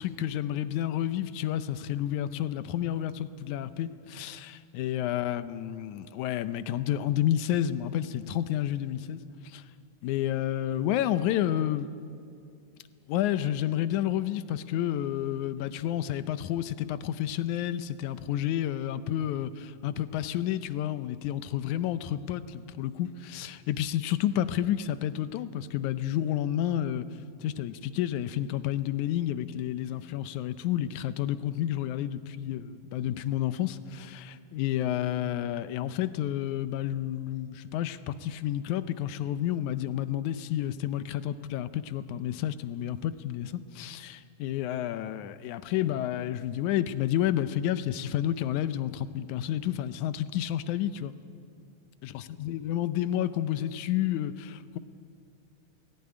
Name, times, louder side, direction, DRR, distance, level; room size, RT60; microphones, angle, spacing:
voice 1, 0.0-9.6 10.0-11.9 13.1-27.1 27.4-51.1 52.0-54.8, left 11 dB, 85° left, 13 dB, 2.2 m, -30 dB
18.5 x 16.5 x 9.7 m, 2.4 s
omnidirectional pair, 3.3 m